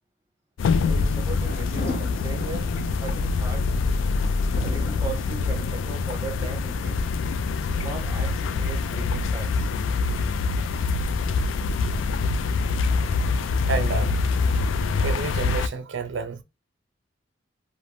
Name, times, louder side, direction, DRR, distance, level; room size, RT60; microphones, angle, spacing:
sound 1, 0.6-15.7, left 4 dB, 85° left, 0.3 m, -25 dB
voice 1, 0.8-2.7 3.0-3.7 4.6-7.1 7.8-9.7, right 3 dB, 15° right, 0.7 m, -38 dB
sound 2, 1.2-14.9, left 2 dB, 50° left, 0.6 m, -42 dB
voice 2, 12.9-13.3 13.7-14.2 14.5-14.6 15.0-16.4, right 4 dB, 75° right, 0.4 m, -30 dB
2.5 x 2.1 x 3.1 m
head